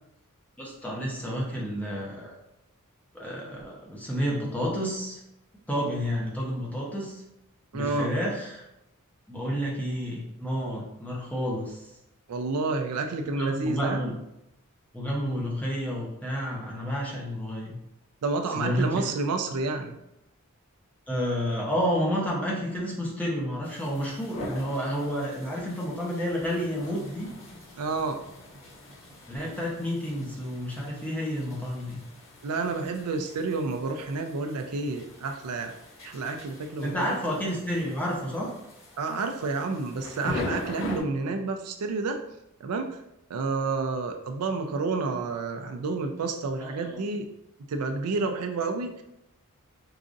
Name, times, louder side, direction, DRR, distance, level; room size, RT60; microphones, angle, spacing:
voice 1, 0.6-2.3 3.1-5.2 5.7-7.2 7.7-8.7 9.3-11.8 13.4-14.1 14.9-17.8 18.6-19.1 21.1-27.3 29.3-32.0 36.8-38.5 46.6-47.0, equal, 5° left, -4 dB, 0.8 m, -30 dB
voice 2, 7.7-8.1 12.3-14.0 18.2-19.9 27.8-28.2 32.4-35.7 36.0-37.1 39.0-42.2 42.6-43.0 43.3-47.3 47.7-49.0, right 3 dB, 80° right, 5 dB, 0.4 m, -30 dB
sound 1, 23.6-41.0, left 1 dB, 60° left, 1.5 m, -41 dB
4.7 x 2.5 x 2.5 m, 0.86 s
head